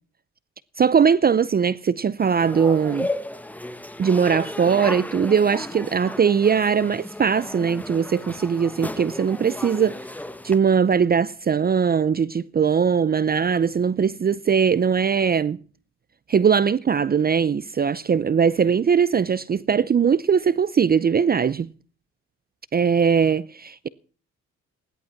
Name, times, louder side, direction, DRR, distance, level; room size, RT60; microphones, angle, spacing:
voice 1, 0.8-3.1 4.0-10.0 10.4-15.6 16.3-21.7 22.7-23.9, right 6 dB, 30° right, 0.6 m, -20 dB
sound 1, 2.2-10.6, left 1 dB, 5° left, 1.2 m, -34 dB
17.0 x 11.5 x 5.8 m
cardioid pair, 90°, 30 cm